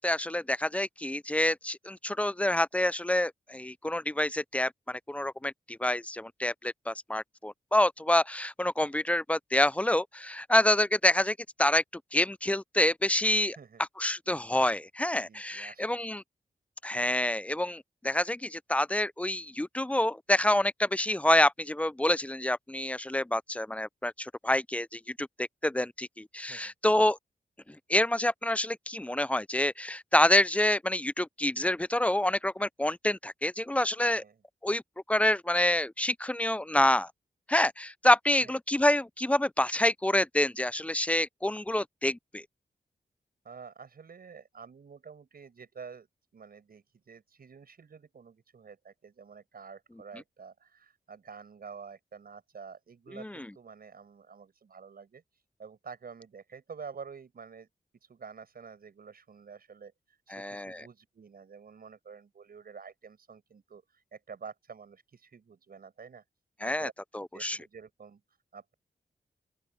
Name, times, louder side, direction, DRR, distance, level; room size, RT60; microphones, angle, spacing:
voice 1, 0.0-11.8 12.1-13.6 14.0-16.2 16.8-27.2 27.9-34.2 34.6-34.8 35.1-37.1 37.5-42.4 53.1-53.5 60.3-60.8 66.6-66.9 67.1-67.6, left 1 dB, 10° left, 0.4 m, -27 dB
voice 2, 15.3-15.8 26.5-26.7 34.1-34.4 38.4-38.5 43.4-46.1 46.3-57.7 58.0-66.2 66.6-68.7, right 6 dB, 70° right, 7.2 m, -49 dB
open air
wide cardioid pair, 95°, 16 cm